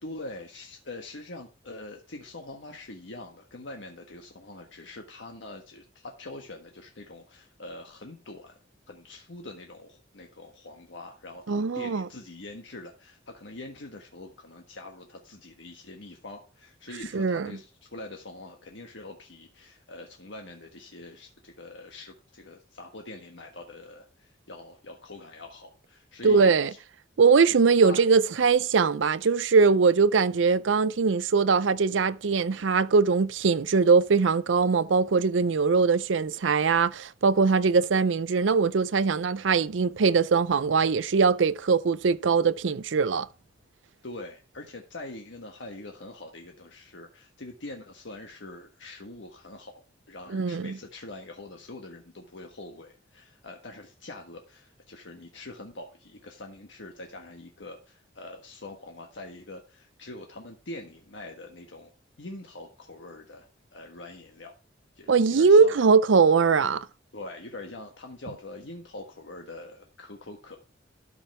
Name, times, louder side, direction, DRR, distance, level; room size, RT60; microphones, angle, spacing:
voice 1, 0.0-8.6 8.9-26.8 27.8-28.0 44.0-61.9 62.2-64.5 64.9-65.8 67.1-70.6, left 2 dB, 70° left, 1.4 m, -44 dB
voice 2, 11.5-12.1 17.1-17.5 26.2-26.7 27.2-43.3 50.3-50.8 65.1-66.9, right 5 dB, 80° right, 0.5 m, -21 dB
13.0 x 5.5 x 4.4 m
head